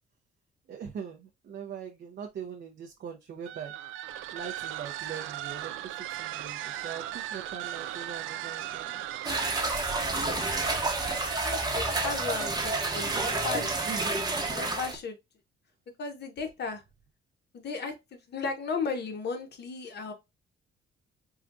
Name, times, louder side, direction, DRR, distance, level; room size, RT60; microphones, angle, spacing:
voice 1, 0.7-3.7 4.3-9.0 13.9-14.2, right 7 dB, 60° right, 0.7 m, -41 dB
sound 1, 3.4-14.8, right 13 dB, 85° right, 0.4 m, -38 dB
sound 2, 9.2-15.0, right 2 dB, 20° right, 1.0 m, -30 dB
voice 2, 11.4-13.8 14.5-15.2 16.0-16.8 17.5-20.1, left 4 dB, 55° left, 1.1 m, -35 dB
4.7 x 2.4 x 2.5 m
cardioid pair, 90°, 20 cm